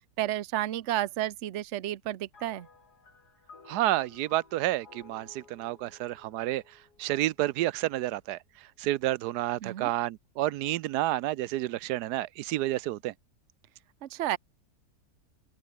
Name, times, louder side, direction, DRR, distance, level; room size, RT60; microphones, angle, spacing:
voice 1, 0.2-2.7 9.6-9.9 14.0-14.4, right 13 dB, 55° right, 1.0 m, -31 dB
sound 1, 2.3-7.8, left 4 dB, 90° left, 3.7 m, -56 dB
voice 2, 3.7-6.6 7.0-8.4 8.8-13.1, right 15 dB, 90° right, 1.2 m, -30 dB
open air
omnidirectional pair, 1.7 m